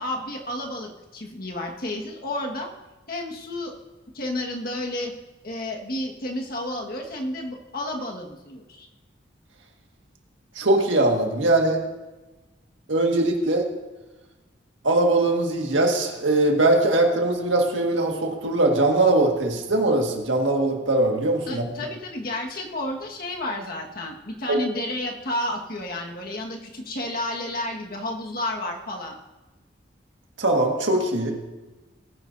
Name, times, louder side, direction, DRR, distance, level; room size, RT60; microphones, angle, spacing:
voice 1, 0.0-2.7 3.1-3.7 4.1-5.1 5.4-8.9 21.5-29.2, left 1 dB, 50° left, 1 dB, 1.6 m, -31 dB
voice 2, 10.6-11.8 12.9-13.7 14.8-21.6 24.5-24.6 30.4-31.3, right 2 dB, 90° right, 2 dB, 1.7 m, -21 dB
19.0 x 10.0 x 2.7 m, 1.1 s
head